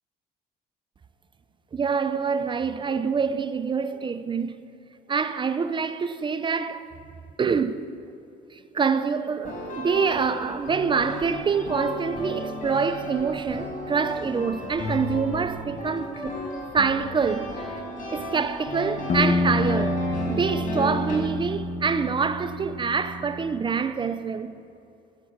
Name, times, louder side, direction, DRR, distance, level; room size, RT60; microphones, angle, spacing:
voice 1, 1.7-4.6 5.1-6.8 7.4-7.8 8.7-16.4 16.7-17.8 18.1-20.0 20.3-24.6, right 5 dB, 30° right, 0.6 m, -26 dB
sound 1, 9.4-21.2, left 1 dB, 50° left, 4.4 m, -34 dB
sound 2, 19.1-23.8, left 1 dB, 35° left, 1.2 m, -28 dB
15.0 x 8.3 x 8.7 m
cardioid pair, 110°, 17 cm